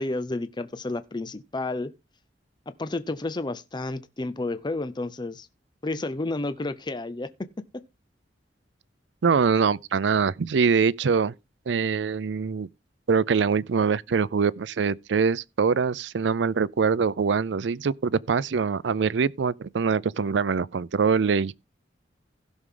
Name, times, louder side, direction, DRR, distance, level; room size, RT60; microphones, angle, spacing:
voice 1, 0.0-1.9 2.8-5.5 5.8-7.5 7.7-7.8, left 2 dB, 25° left, 0.6 m, -31 dB
voice 2, 9.2-11.3 11.7-12.7 13.1-21.5, right 5 dB, 75° right, 0.5 m, -23 dB
16.0 x 6.2 x 3.8 m
head